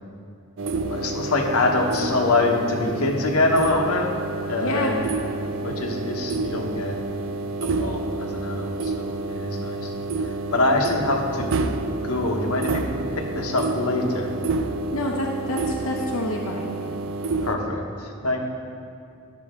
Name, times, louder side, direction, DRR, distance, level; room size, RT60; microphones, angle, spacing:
sound 1, 0.6-17.6, right 3 dB, 65° right, 0.5 m, -29 dB
voice 1, 0.9-4.1 4.5-5.1 5.6-6.9 7.6-11.5 12.0-12.9 13.2-14.3 17.4-18.4, left 2 dB, 85° left, 2 dB, 1.1 m, -25 dB
voice 2, 4.6-4.9 14.9-16.7, left 1 dB, 70° left, -2 dB, 0.8 m, -28 dB
11.5 x 6.7 x 3.6 m, 2.4 s
head